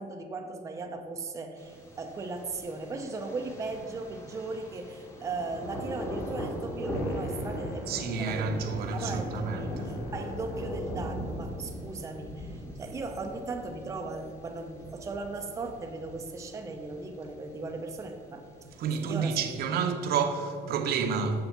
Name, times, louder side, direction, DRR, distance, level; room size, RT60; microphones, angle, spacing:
voice 1, 0.0-8.6 8.9-18.5 19.0-19.8, right 3 dB, 20° right, 0.5 m, -37 dB
Thunder, 1.6-19.6, equal, 15° left, 1.2 m, -40 dB
sound 1, 6.9-10.9, left 1 dB, 80° left, 1.1 m, -44 dB
voice 2, 7.9-9.7 18.8-21.5, right 5 dB, 70° right, 0.9 m, -30 dB
7.0 x 6.9 x 5.7 m
cardioid pair, 170°, 17 cm